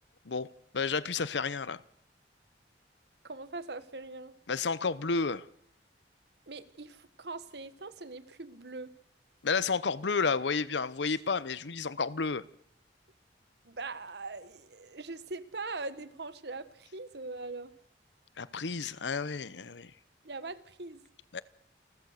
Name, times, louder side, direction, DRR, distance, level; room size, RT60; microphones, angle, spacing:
voice 1, 0.3-1.8 4.5-5.4 9.4-12.4 18.4-19.9 21.3-21.4, left 4 dB, 85° left, 18 dB, 0.8 m, -31 dB
voice 2, 3.2-4.3 6.5-8.9 13.6-17.7 20.2-21.0, right 3 dB, 65° right, 14 dB, 1.3 m, -41 dB
28.5 x 14.0 x 6.6 m, 0.72 s
head